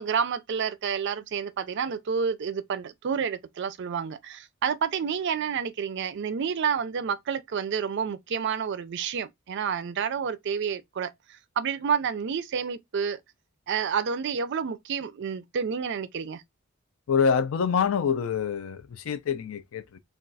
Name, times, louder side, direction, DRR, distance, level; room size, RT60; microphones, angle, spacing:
voice 1, 0.0-11.1 11.6-13.2 13.7-16.4, right 6 dB, 55° right, 0.4 m, -29 dB
voice 2, 17.1-20.0, left 6 dB, 70° left, 0.4 m, -26 dB
2.3 x 2.3 x 4.0 m
head